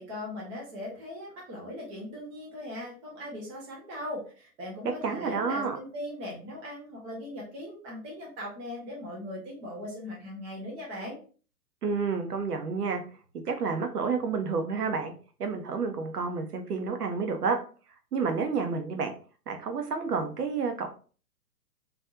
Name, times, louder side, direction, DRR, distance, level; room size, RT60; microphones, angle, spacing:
voice 1, 0.0-11.2, left 1 dB, 10° right, -3 dB, 0.6 m, -39 dB
voice 2, 5.0-5.8 11.8-13.0 13.5-15.1 15.4-17.6 18.1-19.1 19.5-20.9, right 5 dB, 70° right, 6 dB, 0.8 m, -29 dB
3.4 x 2.5 x 2.5 m, 0.38 s
figure-of-eight pair, 120°, 48 cm